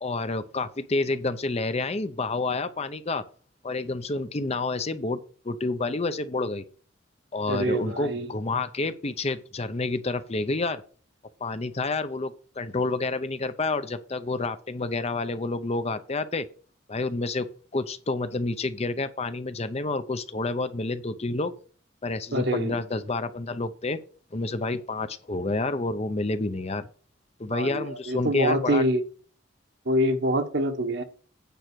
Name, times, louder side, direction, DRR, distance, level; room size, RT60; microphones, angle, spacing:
voice 1, 0.0-3.2 3.6-6.6 7.3-10.8 11.4-16.5 16.9-21.5 22.0-24.0 24.3-26.9 27.4-28.8, left 3 dB, 30° left, 11 dB, 0.7 m, -29 dB
voice 2, 7.5-8.3 22.3-22.8 27.5-29.0 29.8-31.0, equal, 60° right, 7 dB, 1.3 m, -25 dB
9.3 x 4.9 x 6.2 m, 0.42 s
head